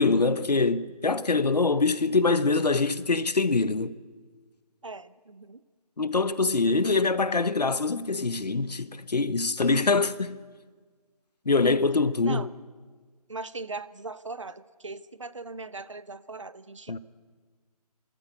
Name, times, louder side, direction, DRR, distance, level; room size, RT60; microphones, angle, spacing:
voice 1, 0.0-3.9 6.0-10.4 11.4-12.5 16.9-17.0, left 3 dB, 85° left, 1.1 m, -24 dB
voice 2, 4.8-5.6 12.2-12.5 13.3-16.9, right 3 dB, 50° right, 0.7 m, -39 dB
27.5 x 13.5 x 8.3 m
figure-of-eight pair, 180°, 20 cm